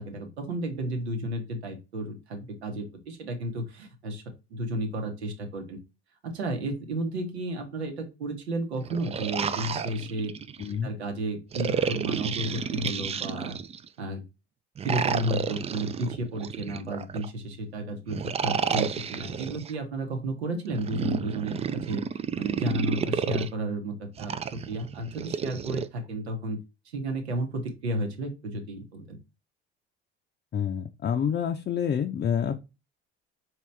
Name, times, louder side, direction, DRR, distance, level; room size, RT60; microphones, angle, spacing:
voice 1, 0.0-4.2 4.5-5.8 6.2-10.3 10.8-13.6 14.0-14.2 14.8-22.0 22.3-26.6 26.9-29.2, right 1 dB, 85° right, 5 dB, 1.1 m, -32 dB
sound 1, 8.8-10.7 11.5-13.9 14.8-17.3 18.1-19.7 20.7-23.5 24.2-25.9, right 7 dB, 20° right, 0.3 m, -31 dB
voice 2, 10.6-10.9 30.5-32.6, left 8 dB, 30° left, 4 dB, 0.6 m, -28 dB
4.9 x 3.0 x 3.2 m, 0.27 s
hypercardioid pair, 65°, 32 cm